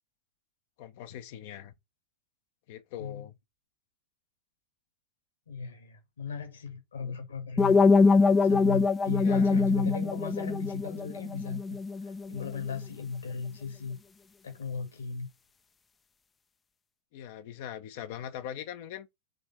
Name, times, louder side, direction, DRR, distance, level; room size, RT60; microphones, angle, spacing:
voice 1, 0.8-1.7 2.7-3.4 7.0-7.2 9.2-9.6 17.1-19.1, left 10 dB, 50° left, 0.8 m, -42 dB
voice 2, 5.5-7.8 8.4-11.8 12.3-14.0 14.4-15.3, left 6 dB, 70° left, 2.0 m, -36 dB
sound 1, 7.6-12.5, left 4 dB, 15° left, 0.5 m, -24 dB
5.1 x 3.6 x 5.5 m
figure-of-eight pair, 90°, 0 cm